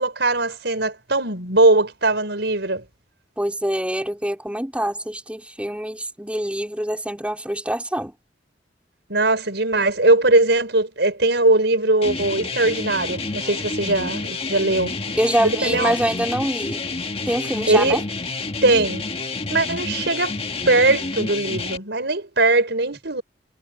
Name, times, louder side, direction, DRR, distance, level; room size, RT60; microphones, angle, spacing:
voice 1, 0.0-2.8 9.1-14.9 15.4-15.9 17.7-18.0 18.6-19.0 19.5-20.3 20.7-23.2, right 2 dB, 70° right, 6.2 m, -20 dB
voice 2, 3.4-8.1 15.2-16.8 17.3-18.0, right 1 dB, 5° right, 4.4 m, -25 dB
sound 1, 12.0-21.8, left 3 dB, 35° left, 1.6 m, -29 dB
head